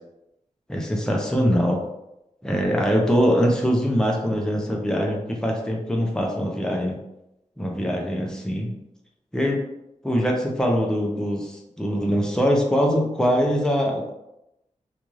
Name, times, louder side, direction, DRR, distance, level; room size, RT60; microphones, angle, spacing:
voice 1, 0.7-1.8 2.4-7.0 7.6-8.7 9.3-9.6 10.0-11.5 11.8-14.1, equal, 5° left, 0 dB, 0.6 m, -22 dB
2.5 x 2.4 x 3.0 m, 0.87 s
wide cardioid pair, 75°, 13 cm